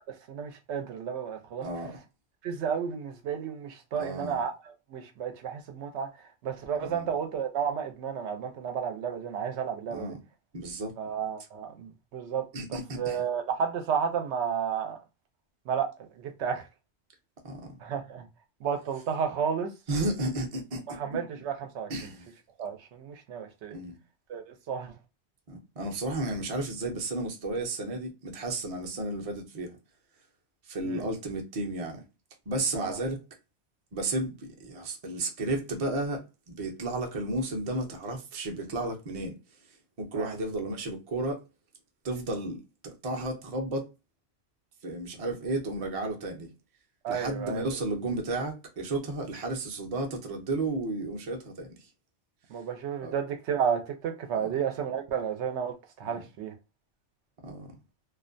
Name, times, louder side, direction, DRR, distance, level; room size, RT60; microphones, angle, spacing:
voice 1, 0.0-1.7 2.4-4.5 4.9-10.1 11.0-12.4 13.0-15.0 15.7-16.7 17.8-18.3 18.6-19.7 20.9-21.9 22.6-23.8 24.3-24.9 30.8-31.0 32.7-33.0 40.1-40.3 47.0-47.6 52.5-56.5, right 7 dB, 90° right, 0.9 m, -32 dB
voice 2, 1.6-1.9 4.0-4.4 6.8-7.1 9.9-10.2 10.5-10.9 12.5-13.2 17.4-17.8 19.9-21.2 21.9-22.3 23.7-24.0 25.5-29.8 30.7-32.0 32.5-33.2 33.9-39.4 40.0-41.4 42.0-43.9 44.8-46.5 47.1-51.9 53.0-53.1 54.3-54.5 56.0-56.2 57.4-57.7, right 2 dB, 40° right, 0.6 m, -33 dB
2.4 x 2.1 x 2.5 m
omnidirectional pair, 1.1 m